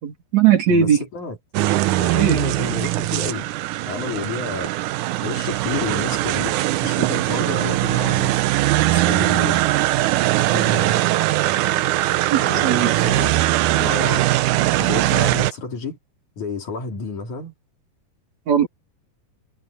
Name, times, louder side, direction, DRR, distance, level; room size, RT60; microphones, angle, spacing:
voice 1, 0.0-1.0 2.1-2.4 12.3-12.9 18.5-18.7, right 8 dB, 55° right, 3.9 m, -18 dB
voice 2, 0.7-1.4 2.0-3.5 3.9-5.0 5.2-8.5 8.9-9.6 10.5-11.0 12.4-13.4 13.8-14.3 14.8-16.0 16.4-17.5, left 4 dB, 60° left, 4.9 m, -30 dB
sound 1, 1.5-15.5, right 16 dB, 75° right, 2.0 m, -20 dB
omnidirectional pair, 3.9 m